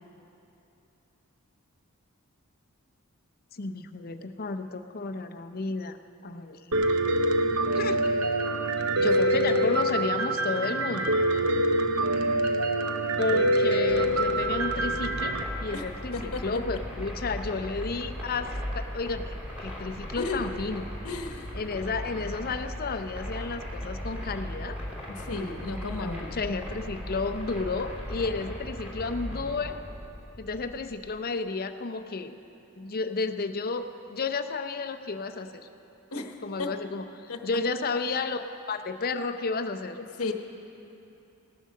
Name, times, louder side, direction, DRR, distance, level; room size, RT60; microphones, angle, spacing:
voice 1, 3.5-6.0 6.2-6.8 7.7-8.0 9.0-11.1 13.2-20.8 21.5-24.8 26.0-29.8 30.4-32.3 32.8-35.7 36.4-40.0, left 4 dB, 45° left, 9 dB, 0.6 m, -32 dB
Piano, 6.7-15.4, right 1 dB, 75° right, 0.8 m, -25 dB
sound 1, 13.9-31.2, equal, 5° right, 2.4 m, -38 dB
voice 2, 15.7-16.8 20.1-20.5 21.0-21.6 25.1-26.4 36.1-36.7 37.3-37.4 40.0-40.3, left 3 dB, 75° left, 4 dB, 1.0 m, -35 dB
17.5 x 10.0 x 6.5 m, 2.9 s
head